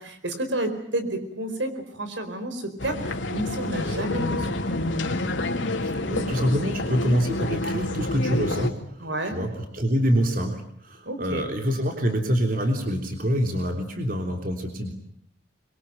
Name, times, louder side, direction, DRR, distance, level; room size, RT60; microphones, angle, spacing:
voice 1, 0.0-4.8 9.0-9.4 11.0-11.5, right 1 dB, 80° right, 8 dB, 4.6 m, -31 dB
sound 1, 2.8-8.7, left 2 dB, 85° left, 2.9 m, -28 dB
voice 2, 5.8-14.9, equal, 45° right, 4 dB, 3.4 m, -26 dB
25.0 x 23.5 x 9.1 m, 0.64 s
head